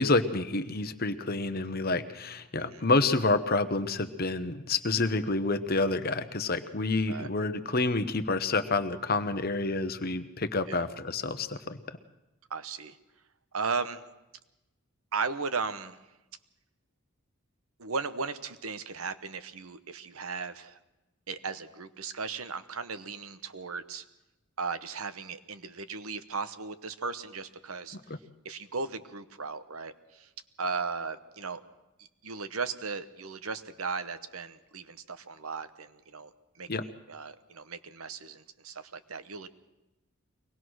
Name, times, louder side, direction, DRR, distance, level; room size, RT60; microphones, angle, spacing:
voice 1, 0.0-11.8 28.1-28.2 36.7-36.8, left 3 dB, 45° left, 11 dB, 1.0 m, -28 dB
voice 2, 12.5-13.0 13.5-14.0 15.1-16.0 17.8-20.8 21.3-24.0 24.6-28.0 28.4-30.3 30.6-31.6 32.2-36.3 36.5-36.7 37.1-39.5, right 4 dB, 75° right, 11 dB, 1.1 m, -36 dB
23.5 x 18.5 x 6.3 m, 1.0 s
head